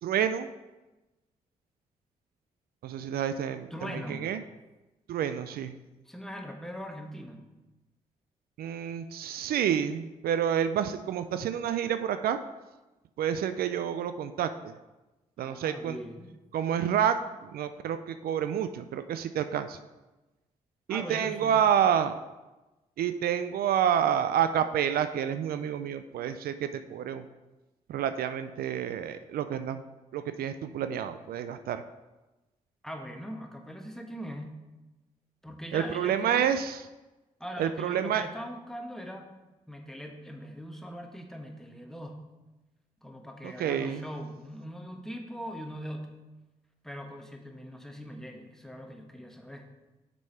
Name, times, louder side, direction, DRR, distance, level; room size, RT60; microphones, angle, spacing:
voice 1, 0.0-0.5 2.8-4.4 5.1-5.7 8.6-12.4 13.2-14.7 15.4-16.0 16.5-19.8 20.9-22.2 23.0-27.2 27.9-29.8 30.1-31.8 35.7-36.8 37.6-38.3 43.4-44.1, right 9 dB, 75° right, 10 dB, 0.4 m, -29 dB
voice 2, 3.7-4.3 6.1-7.4 15.4-16.3 20.9-21.6 32.8-34.6 35.4-36.6 37.4-39.3 39.7-42.2 43.0-46.2 46.8-49.7, equal, 5° left, 3 dB, 1.2 m, -41 dB
6.3 x 5.3 x 4.3 m, 1.1 s
supercardioid pair, 50°, 16 cm